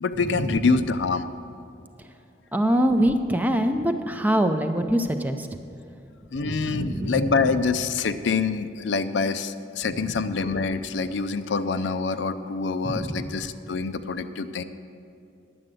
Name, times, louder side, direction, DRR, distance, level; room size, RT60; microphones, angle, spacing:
voice 1, 0.0-1.3 6.3-14.6, left 4 dB, 80° left, 11 dB, 0.5 m, -26 dB
voice 2, 2.5-5.5 6.4-7.2 12.8-13.3, equal, 10° right, 6 dB, 0.5 m, -24 dB
11.0 x 7.7 x 7.6 m, 2.5 s
head